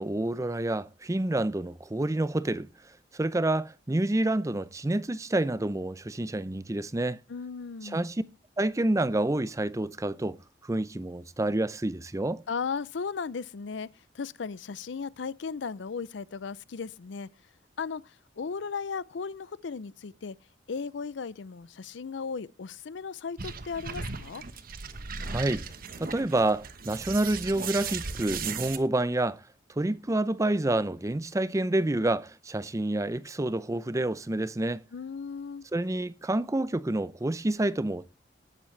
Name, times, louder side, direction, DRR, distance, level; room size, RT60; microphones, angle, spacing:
voice 1, 0.0-2.7 3.1-7.2 7.8-8.2 8.6-12.4 25.3-25.6 26.0-29.4 29.8-34.8 35.7-38.1, right 1 dB, 15° right, 0.5 m, -28 dB
voice 2, 7.3-8.0 12.5-13.9 14.1-17.3 17.8-20.4 20.7-24.4 34.9-35.6, left 5 dB, 75° left, 0.5 m, -36 dB
sound 1, 23.4-28.8, right 5 dB, 50° right, 1.1 m, -37 dB
18.5 x 7.4 x 3.2 m
head